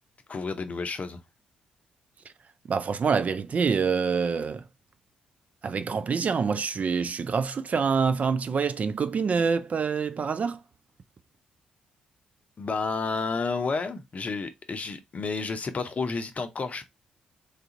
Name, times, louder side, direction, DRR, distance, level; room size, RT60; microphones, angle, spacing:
voice 1, 0.3-1.2 12.6-16.9, left 4 dB, 40° left, 0.6 m, -31 dB
voice 2, 2.7-4.6 5.6-10.6, right 5 dB, 45° right, 0.3 m, -26 dB
3.3 x 2.4 x 2.7 m
hypercardioid pair, 40°, 4 cm